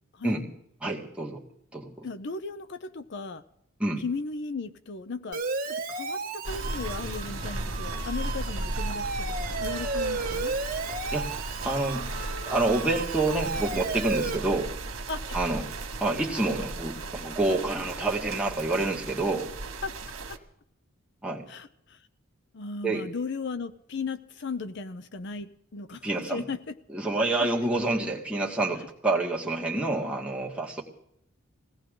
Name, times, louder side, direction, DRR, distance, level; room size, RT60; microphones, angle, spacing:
voice 1, 0.8-1.4 1.7-2.1 3.8-4.0 11.1-11.3 11.6-12.1 12.4-14.7 15.3-15.6 16.0-19.5 21.2-21.4 22.8-23.1 26.0-26.5 26.9-30.8, right 2 dB, 5° right, -2 dB, 1.9 m, -28 dB
voice 2, 2.0-3.4 4.0-10.5 15.1-15.4 19.8-19.9 21.5-22.1 22.5-26.8 27.4-27.5, left 4 dB, 55° left, 13 dB, 0.5 m, -36 dB
Siren, 5.3-14.4, right 3 dB, 40° right, 1.5 m, -34 dB
sound 1, 6.4-20.4, right 2 dB, 70° right, 1.8 m, -35 dB
21.0 x 17.0 x 3.8 m, 0.73 s
head